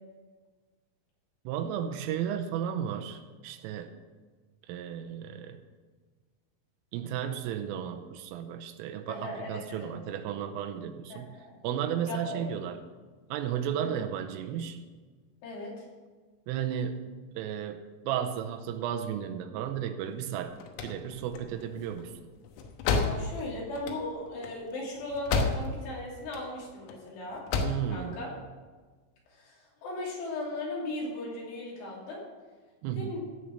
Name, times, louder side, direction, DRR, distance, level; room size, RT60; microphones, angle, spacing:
voice 1, 1.5-3.9 4.7-5.6 6.9-11.4 11.6-12.8 13.3-14.8 16.5-17.1 17.4-20.6 20.8-22.1 27.6-28.2 32.8-33.1, right 9 dB, 90° right, 7 dB, 3.3 m, -34 dB
voice 2, 9.1-9.9 11.1-11.6 12.1-12.6 13.7-13.9 15.4-15.9 23.0-27.4 27.9-28.3 29.3-32.2 33.0-33.2, left 2 dB, 65° left, -4 dB, 5.3 m, -37 dB
sound 1, 20.3-25.9 26.2-27.0 27.3-27.9, left 4 dB, 85° left, 3.8 m, -31 dB
16.0 x 5.6 x 7.2 m, 1.4 s
omnidirectional pair, 5.9 m